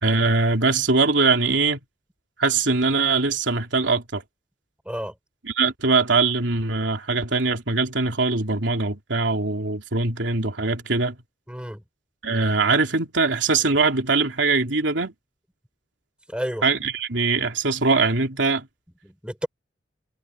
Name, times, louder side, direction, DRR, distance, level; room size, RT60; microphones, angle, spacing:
voice 1, 0.0-1.8 2.4-4.2 5.5-11.1 12.2-15.1 16.6-18.7, right 4 dB, 85° right, 3.1 m, -22 dB
voice 2, 11.5-11.8 16.3-16.6 19.0-19.5, equal, 5° right, 5.2 m, -30 dB
head